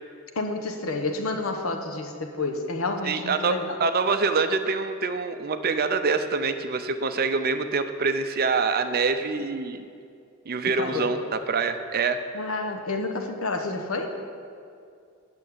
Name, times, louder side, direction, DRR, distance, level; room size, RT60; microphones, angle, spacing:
voice 1, 0.3-3.8 10.6-11.1 12.3-14.1, left 3 dB, 85° left, 5 dB, 1.1 m, -29 dB
voice 2, 3.0-9.9 10.5-12.2, right 4 dB, 45° right, 9 dB, 0.6 m, -25 dB
8.9 x 6.6 x 8.6 m, 2.4 s
head